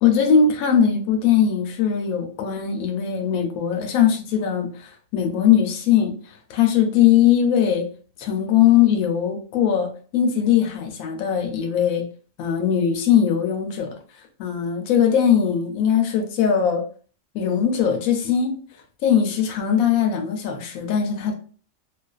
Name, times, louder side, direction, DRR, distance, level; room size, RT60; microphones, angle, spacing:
voice 1, 0.0-7.9 8.2-12.0 12.4-13.9 14.4-16.8 17.3-18.5 19.0-21.3, left 8 dB, 80° left, 1.0 m, -20 dB
2.4 x 2.4 x 2.3 m
omnidirectional pair, 1.5 m